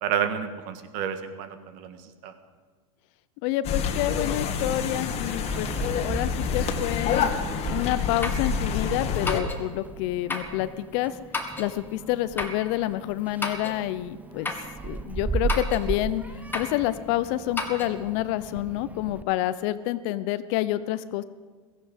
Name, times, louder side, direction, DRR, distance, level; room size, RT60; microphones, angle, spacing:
voice 1, 0.0-2.3, right 8 dB, 55° right, 9 dB, 1.7 m, -30 dB
voice 2, 3.4-5.7 6.0-7.3 7.7-11.2 11.6-14.5 14.8-16.2 16.5-21.2, left 15 dB, 55° left, 15 dB, 0.8 m, -28 dB
sound 1, 3.6-9.4, left 6 dB, 35° left, 1.7 m, -28 dB
Meow, 5.3-19.2, right 4 dB, 10° right, 0.6 m, -37 dB
sound 2, 8.2-8.5 9.3-9.6 10.3-10.6 11.3-11.7 12.4-12.6 13.4-13.8 14.5-14.7 15.5-15.9 16.5-16.8 17.6-17.9, left 3 dB, 10° left, 1.7 m, -31 dB
16.5 x 15.0 x 5.3 m, 1.4 s
hypercardioid pair, 110°, 17 cm